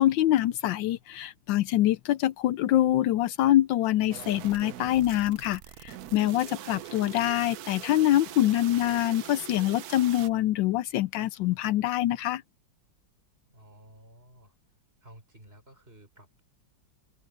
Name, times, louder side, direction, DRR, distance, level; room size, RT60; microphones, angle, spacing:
voice 1, 0.0-12.4, left 13 dB, 80° left, 1.2 m, -25 dB
sound 1, 4.1-10.3, right 12 dB, 65° right, 1.1 m, -43 dB
voice 2, 13.5-14.5 15.0-16.4, right 1 dB, 30° right, 5.9 m, -53 dB
open air
omnidirectional pair, 2.0 m